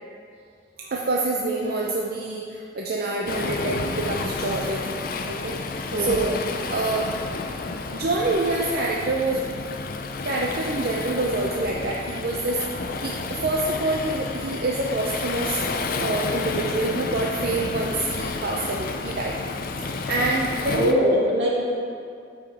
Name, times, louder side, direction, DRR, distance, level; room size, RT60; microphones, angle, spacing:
voice 1, 0.8-5.0 5.3-7.1 7.9-9.4 10.2-15.6 16.0-19.4 19.8-21.0, right 2 dB, 55° right, -2 dB, 0.6 m, -27 dB
Waves surf, 3.3-20.9, left 3 dB, 55° left, 0.5 m, -30 dB
voice 2, 5.9-6.2 19.8-20.0 20.7-21.5, equal, 80° right, -5 dB, 2.1 m, -22 dB
12.5 x 5.2 x 3.5 m, 2.3 s
head